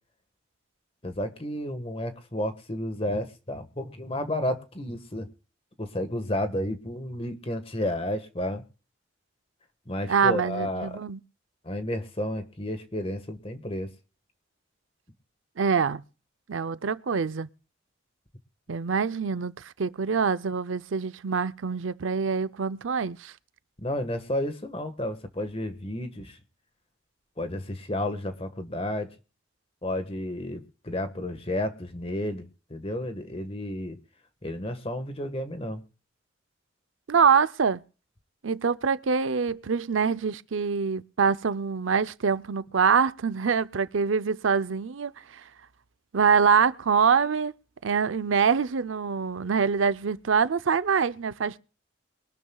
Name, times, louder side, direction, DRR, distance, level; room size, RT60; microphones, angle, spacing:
voice 1, 1.0-5.3 5.8-8.6 9.9-11.0 11.6-13.9 23.8-26.4 27.4-29.1 29.8-34.0 34.4-35.8, left 1 dB, 30° left, 1.5 m, -32 dB
voice 2, 10.1-11.2 15.6-16.0 16.5-17.5 18.7-23.3 37.1-37.8 38.4-45.4 46.1-47.5 47.8-51.6, right 6 dB, 80° right, 0.6 m, -25 dB
23.5 x 12.0 x 2.3 m
head